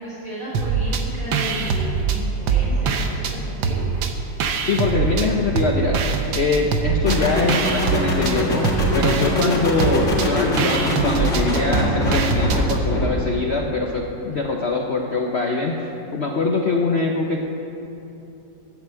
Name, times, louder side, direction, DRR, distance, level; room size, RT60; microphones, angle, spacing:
voice 1, 0.0-3.8, equal, 45° right, -10 dB, 3.8 m, -34 dB
sound 1, 0.5-1.0 1.3-3.3 3.6-5.3 5.6-12.8, right 5 dB, 90° right, 1.7 m, -23 dB
voice 2, 4.6-6.0 6.3-8.7 8.9-17.4, left 3 dB, 55° left, 0 dB, 0.7 m, -23 dB
sound 2, 7.1-13.4, left 1 dB, 40° left, 2.0 m, -23 dB
11.0 x 8.3 x 7.5 m, 2.8 s
omnidirectional pair, 2.0 m